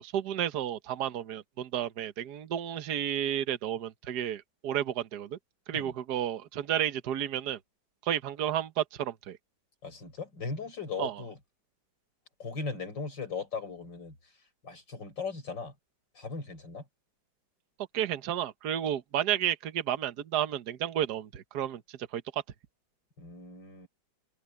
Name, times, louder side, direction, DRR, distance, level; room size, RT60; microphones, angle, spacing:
voice 1, 0.0-5.4 5.7-7.6 8.0-9.4 11.0-11.1 17.9-22.4, right 10 dB, 60° right, 1.5 m, -32 dB
voice 2, 9.8-11.4 12.4-14.3 14.6-15.7 16.1-16.8 23.2-23.9, left 4 dB, 65° left, 5.8 m, -38 dB
open air
omnidirectional pair, 2.2 m